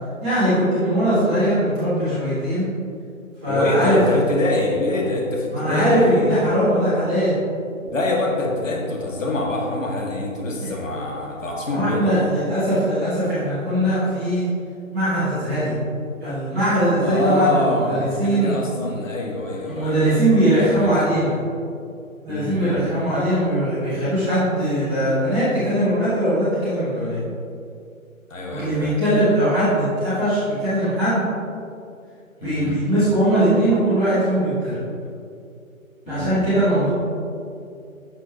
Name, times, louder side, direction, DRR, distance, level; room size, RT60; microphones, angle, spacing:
voice 1, 0.2-2.7 3.4-4.0 5.5-7.4 10.6-10.7 11.6-14.5 14.9-15.7 16.2-18.5 19.7-21.3 22.2-27.2 28.5-31.2 32.4-34.8 36.1-36.9, right 1 dB, 5° right, -13 dB, 0.8 m, -20 dB
voice 2, 3.5-6.3 7.8-12.1 17.0-20.9 22.3-23.1 28.3-29.0 32.4-32.7 36.1-36.6, left 2 dB, 65° left, -2 dB, 1.9 m, -25 dB
10.5 x 6.2 x 2.8 m, 2.5 s
figure-of-eight pair, 150°, 42 cm